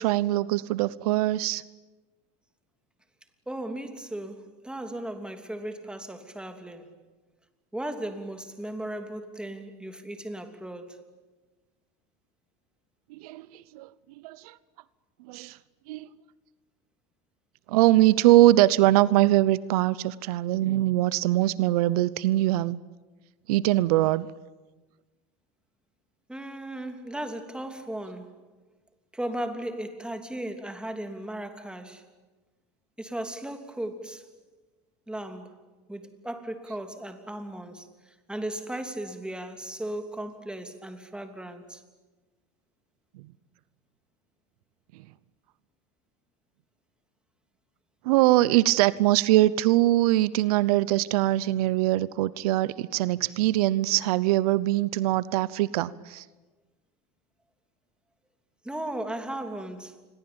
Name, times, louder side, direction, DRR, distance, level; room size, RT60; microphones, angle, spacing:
voice 1, 0.0-1.6 13.1-13.9 14.2-14.6 15.2-15.6 15.9-16.1 17.7-22.8 23.5-24.3 43.1-43.2 44.9-45.0 48.0-56.3, right 16 dB, 85° right, 19 dB, 0.8 m, -22 dB
voice 2, 3.5-6.9 7.7-11.0 26.3-28.4 29.1-32.0 33.0-34.3 35.1-35.6 35.9-41.8 58.6-60.0, right 1 dB, 5° right, 6 dB, 3.1 m, -36 dB
28.5 x 22.0 x 8.8 m, 1.2 s
supercardioid pair, 115°, 19 cm